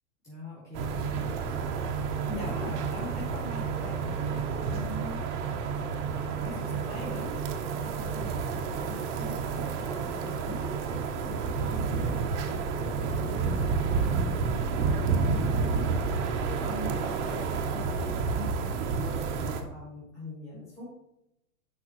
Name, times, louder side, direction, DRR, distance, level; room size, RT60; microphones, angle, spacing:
voice 1, 0.2-5.2 6.4-15.9 16.2-16.3 16.6-20.9, left 1 dB, 5° left, -11 dB, 2.4 m, -42 dB
sound 1, 0.7-19.6, right 5 dB, 55° right, 1.0 m, -30 dB
6.3 x 5.5 x 3.0 m, 0.84 s
hypercardioid pair, 115°, 43 cm